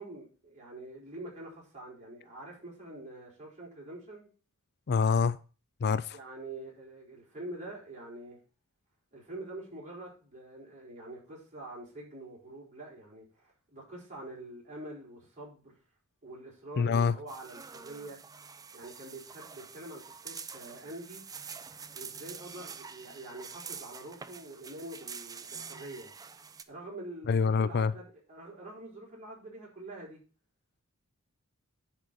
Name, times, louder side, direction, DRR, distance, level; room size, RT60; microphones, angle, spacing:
voice 1, 0.0-4.3 6.1-8.4 9.1-15.8 16.2-18.2 18.7-21.2 21.9-26.1 26.7-30.2, right 2 dB, 35° right, 4.6 m, -45 dB
voice 2, 4.9-5.4 5.8-6.2 16.8-17.2 27.3-27.9, left 5 dB, 50° left, 0.4 m, -26 dB
sound 1, 17.3-26.6, right 6 dB, 15° right, 0.5 m, -46 dB
10.5 x 4.5 x 6.8 m
head